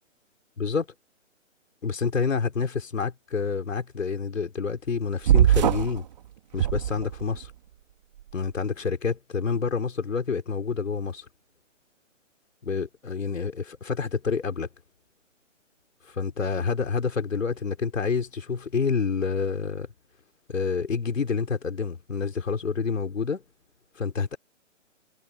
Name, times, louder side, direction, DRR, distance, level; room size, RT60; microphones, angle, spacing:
voice 1, 0.6-0.9 1.8-6.0 6.5-7.5 8.3-11.2 12.6-14.7 16.1-19.9 20.5-23.4 23.9-24.4, left 5 dB, 80° left, 5.1 m, -28 dB
sound 1, 5.3-6.0 6.5-7.5, right 11 dB, 35° right, 3.5 m, -21 dB
hypercardioid pair, 165°, 38 cm